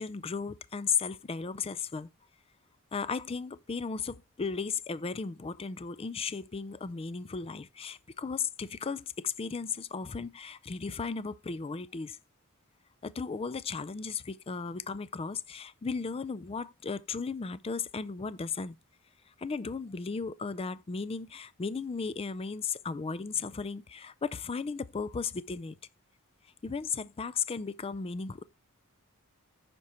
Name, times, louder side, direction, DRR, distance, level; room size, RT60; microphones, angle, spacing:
voice 1, 0.0-2.1 2.9-12.2 13.0-18.8 19.4-25.8 26.6-28.4, left 5 dB, 25° left, 0.4 m, -35 dB
9.5 x 5.3 x 4.3 m
head